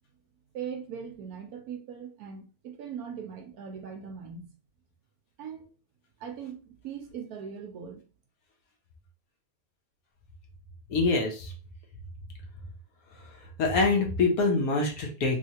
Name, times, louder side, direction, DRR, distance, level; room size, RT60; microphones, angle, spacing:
voice 1, 0.5-4.5 5.4-5.7 6.2-8.0, right 7 dB, 70° right, 1.1 m, -40 dB
voice 2, 10.9-11.5 13.6-15.4, left 3 dB, 65° left, 1.2 m, -25 dB
3.2 x 3.1 x 2.8 m
omnidirectional pair, 1.8 m